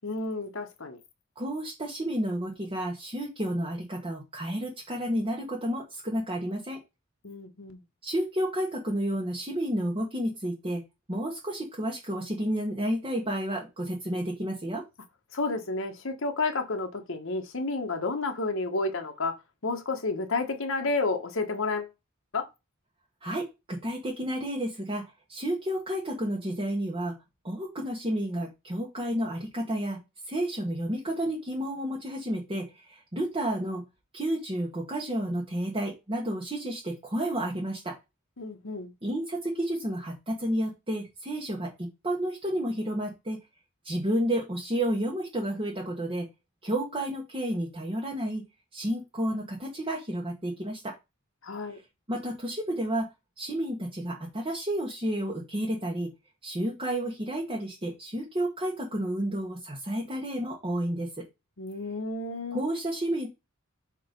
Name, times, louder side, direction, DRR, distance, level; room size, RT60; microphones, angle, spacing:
voice 1, 0.0-1.0 7.2-7.8 15.3-19.4 19.6-21.9 22.3-22.5 38.4-38.9 51.4-51.8 61.6-62.6, left 3 dB, 65° left, 1.2 m, -31 dB
voice 2, 1.4-6.8 8.0-10.8 11.1-14.8 23.2-25.0 25.3-27.1 27.4-30.0 30.3-33.8 34.1-37.9 39.0-43.4 43.8-46.3 46.6-48.4 48.7-50.9 52.1-53.1 53.4-56.1 56.4-61.3 62.5-63.3, right 1 dB, 25° right, 1.3 m, -31 dB
6.4 x 3.0 x 5.2 m
head